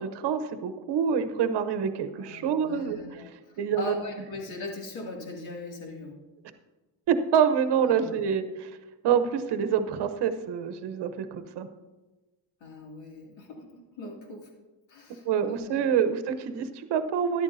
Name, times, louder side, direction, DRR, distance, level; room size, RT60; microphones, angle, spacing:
voice 1, 0.0-3.0 3.6-4.0 7.1-8.7 9.0-11.7 15.3-17.4, right 7 dB, 55° right, 10 dB, 0.9 m, -26 dB
voice 2, 2.1-6.2 7.9-8.2 12.6-13.6 13.9-14.5 14.9-16.0, left 2 dB, 70° left, 0 dB, 2.5 m, -40 dB
13.5 x 11.0 x 2.7 m, 1.2 s
cardioid pair, 135°, 48 cm